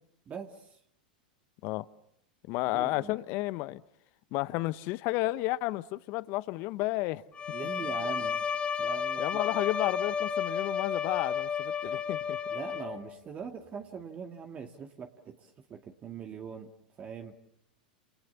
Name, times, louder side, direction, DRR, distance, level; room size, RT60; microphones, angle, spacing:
voice 1, 0.3-0.8 2.7-3.2 7.5-8.4 8.8-9.2 12.5-16.7 17.0-17.3, right 6 dB, 30° right, 2.1 m, -42 dB
voice 2, 2.5-3.8 4.3-7.2 9.2-12.4, left 19 dB, 50° left, 1.1 m, -32 dB
Bowed string instrument, 7.3-13.2, left 7 dB, 20° left, 2.4 m, -32 dB
29.5 x 28.5 x 7.0 m
hypercardioid pair, 95°, 5 cm